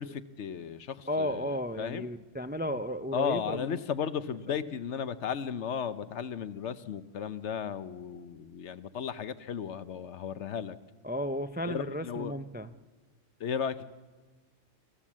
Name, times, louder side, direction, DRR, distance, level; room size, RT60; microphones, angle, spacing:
voice 1, 0.0-2.1 3.1-10.8 11.7-12.3 13.4-13.8, left 7 dB, 70° left, 13 dB, 1.1 m, -35 dB
voice 2, 1.1-3.8 11.0-12.7, equal, 15° right, 11 dB, 0.4 m, -34 dB
27.5 x 15.0 x 7.4 m, 1.4 s
omnidirectional pair, 1.3 m